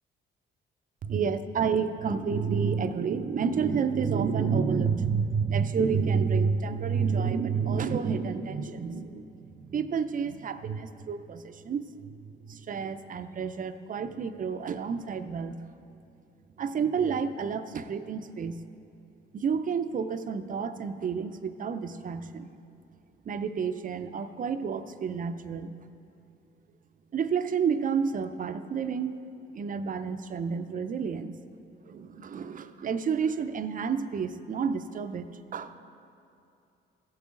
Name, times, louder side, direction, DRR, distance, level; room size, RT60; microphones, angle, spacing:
voice 1, 1.0-15.6 16.6-18.6 19.3-22.5 23.3-25.9 27.1-29.2 29.5-31.4 31.9-35.8, right 6 dB, 45° right, 10 dB, 0.5 m, -30 dB
15.0 x 8.7 x 3.8 m, 2.7 s
cardioid pair, 90°, 20 cm